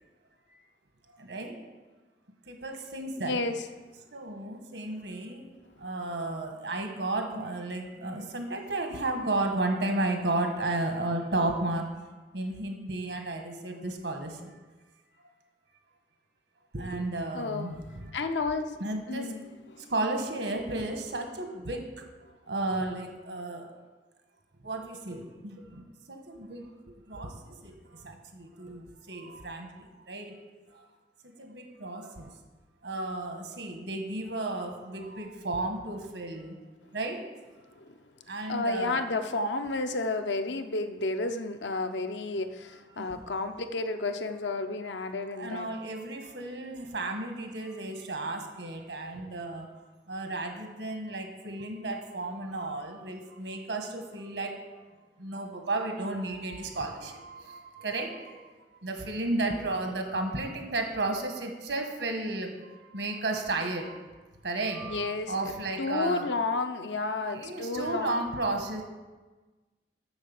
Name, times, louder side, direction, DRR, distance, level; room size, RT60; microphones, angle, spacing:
voice 1, 1.2-1.6 2.5-3.4 4.1-5.5 5.8-11.8 12.3-14.5 16.7-18.1 18.8-19.3 19.9-21.8 22.5-23.7 24.6-30.3 30.7-30.9 31.2-32.3 32.8-36.6 36.9-37.2 38.3-39.0 42.9-43.2 45.4-49.7 50.1-54.8 55.2-58.5 58.8-64.0 64.4-66.3 67.3-68.8, right 2 dB, 85° right, 4 dB, 1.5 m, -33 dB
voice 2, 3.2-3.5 17.3-17.8 18.1-18.8 19.1-19.9 37.8-37.9 38.5-45.7 64.9-65.3 65.8-68.3, left 3 dB, 85° left, 7 dB, 0.7 m, -31 dB
8.0 x 6.6 x 7.1 m, 1.3 s
head